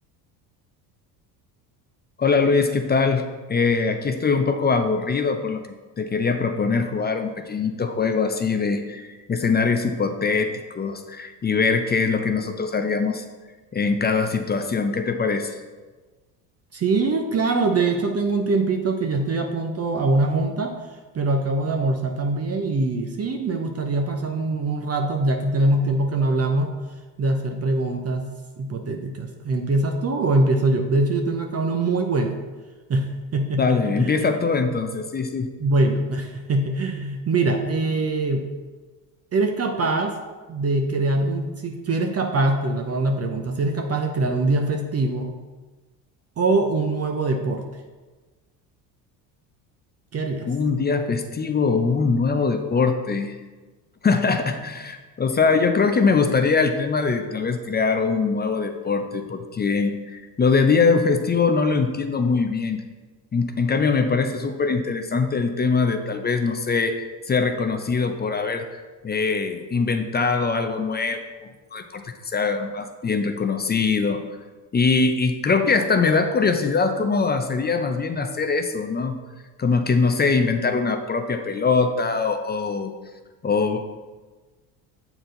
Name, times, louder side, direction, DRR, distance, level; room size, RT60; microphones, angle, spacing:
voice 1, 2.2-5.6 6.0-13.2 13.7-15.5 33.6-35.5 50.5-53.4 54.0-62.8 63.3-74.2 74.7-79.2 79.6-82.9 83.4-83.8, left 4 dB, 20° left, 7 dB, 0.5 m, -22 dB
voice 2, 16.7-20.8 21.1-26.7 27.2-28.3 28.6-32.3 32.9-34.3 35.6-38.5 39.3-40.2 40.5-45.4 46.4-47.6 50.1-50.5, right 2 dB, 30° right, 3 dB, 0.7 m, -23 dB
7.6 x 4.5 x 3.9 m, 1.3 s
hypercardioid pair, 70°, 49 cm